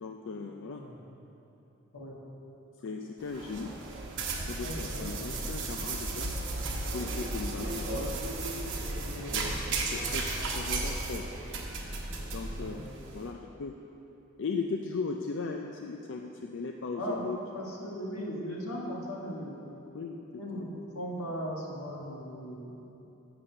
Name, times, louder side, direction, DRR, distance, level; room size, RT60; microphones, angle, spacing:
voice 1, 0.0-0.8 2.8-3.7 4.5-6.3 6.9-8.1 9.1-11.2 12.3-12.8 13.1-13.7 14.4-17.4 19.9-20.2 20.5-20.7, left 4 dB, 55° left, 2 dB, 0.4 m, -37 dB
sound 1, 3.2-13.2, right 2 dB, 55° right, 1.0 m, -34 dB
voice 2, 4.6-5.4 9.1-9.4 12.6-12.8 17.0-19.7 20.4-22.8, equal, 85° left, -3 dB, 1.6 m, -38 dB
7.3 x 6.8 x 6.8 m, 3.0 s
head